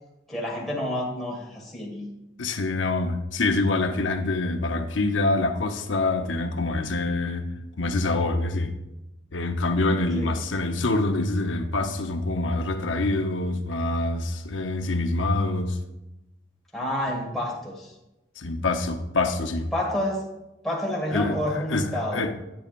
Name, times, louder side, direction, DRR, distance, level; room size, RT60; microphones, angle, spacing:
voice 1, 0.3-2.1 10.2-10.4 16.7-17.9 19.7-20.3 20.6-22.2, left 1 dB, ahead, -4 dB, 1.6 m, -29 dB
voice 2, 2.4-7.4 7.8-8.7 9.3-15.8 18.4-19.7 21.1-22.3, left 2 dB, 80° left, 6 dB, 0.8 m, -25 dB
10.5 x 9.1 x 2.5 m, 0.94 s
head